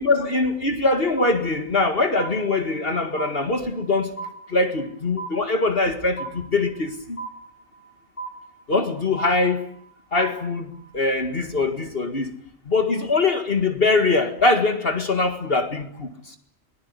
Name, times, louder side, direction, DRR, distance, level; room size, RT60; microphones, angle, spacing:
voice 1, 0.0-4.1 4.5-7.2 8.7-9.6 10.1-12.3 12.7-16.4, left 3 dB, 45° left, 7 dB, 2.2 m, -22 dB
sound 1, 1.2-1.9 2.2-2.9 3.2-3.9 4.2-4.9 5.2-5.9 6.2-6.9 7.2-7.9 8.2-8.9 9.2-9.9 10.2-10.9, right 4 dB, 25° left, 7.7 m, -36 dB
23.5 x 20.0 x 9.7 m, 0.66 s
omnidirectional pair, 1.4 m